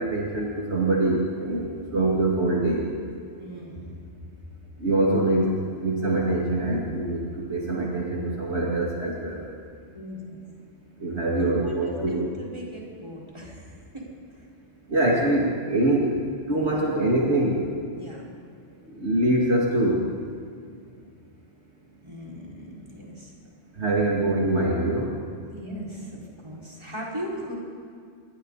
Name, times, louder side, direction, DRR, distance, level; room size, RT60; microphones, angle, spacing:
voice 1, 0.0-2.9 4.8-9.4 11.0-12.3 14.9-16.2 16.5-17.7 19.0-20.1 23.7-25.1, right 1 dB, 65° right, -3 dB, 2.8 m, -24 dB
voice 2, 3.4-4.0 9.9-10.4 11.3-14.0 14.3-14.5 17.9-18.3 22.0-23.3 25.5-27.5, equal, 25° right, -5 dB, 5.2 m, -38 dB
27.5 x 23.5 x 4.1 m, 2.3 s
omnidirectional pair, 1.2 m